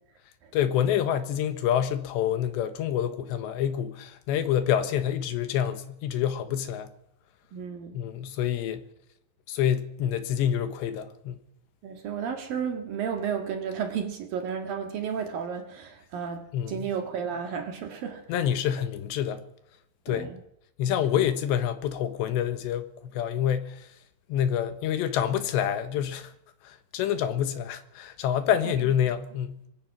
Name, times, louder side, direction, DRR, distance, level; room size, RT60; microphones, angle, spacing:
voice 1, 0.5-6.9 7.9-8.8 9.5-11.4 16.5-16.9 18.3-19.4 20.1-20.3 20.8-23.9 24.3-26.3 26.6-29.6, left 9 dB, 70° left, 3.2 m, -27 dB
voice 2, 7.5-7.9 11.8-18.2 20.1-20.4, right 7 dB, 55° right, 2.9 m, -32 dB
23.5 x 21.0 x 6.0 m
omnidirectional pair, 5.9 m